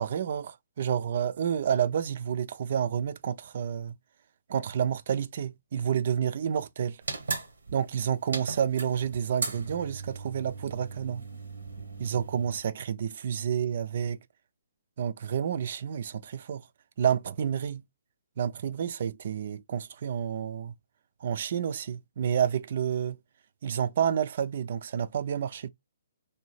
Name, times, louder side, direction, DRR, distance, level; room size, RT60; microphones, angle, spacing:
voice 1, 0.0-3.9 4.5-7.0 7.7-11.2 12.0-14.2 15.0-16.7 17.0-17.8 18.4-20.7 21.2-23.2 23.6-25.7, right 8 dB, 55° right, 0.3 m, -29 dB
sound 1, 7.0-12.6, right 4 dB, 80° right, 0.7 m, -37 dB
2.7 x 2.2 x 3.1 m
hypercardioid pair, 140°, 0 cm